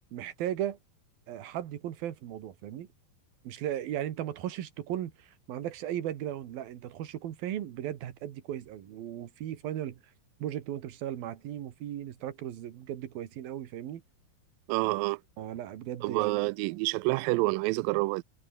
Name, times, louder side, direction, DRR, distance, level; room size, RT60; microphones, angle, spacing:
voice 1, 0.1-0.8 1.3-2.9 3.4-10.0 10.4-14.0 15.4-16.4, right 11 dB, 70° right, 3.5 m, -36 dB
voice 2, 14.7-15.2 16.0-18.2, right 23 dB, 85° right, 2.0 m, -28 dB
omnidirectional pair, 4.6 m